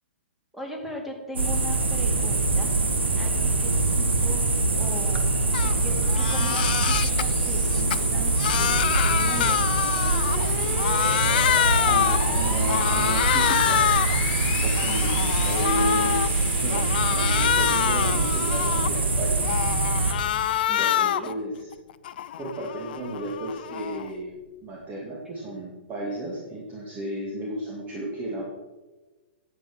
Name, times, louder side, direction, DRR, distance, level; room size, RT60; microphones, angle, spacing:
voice 1, 0.5-2.7 3.2-4.4 4.8-5.4 5.6-9.6 20.7-21.3, left 1 dB, 5° right, 0 dB, 2.6 m, -39 dB
sound 1, 1.4-20.1, right 2 dB, 80° right, 1.6 m, -24 dB
sound 2, 4.6-20.6, left 7 dB, 40° left, 1.8 m, -36 dB
Crying sobbing, 5.5-5.7 6.1-7.3 7.7-10.5 10.8-12.3 12.7-14.2 14.6-16.3 16.7-19.0 19.4-21.3 21.7-24.1, left 11 dB, 55° left, 0.5 m, -26 dB
voice 2, 11.7-14.0 14.6-19.6 20.8-21.7 22.4-24.4 24.6-28.4, right 1 dB, 25° right, -2 dB, 2.2 m, -33 dB
10.5 x 7.9 x 6.2 m, 1.2 s
figure-of-eight pair, 115°, 6 cm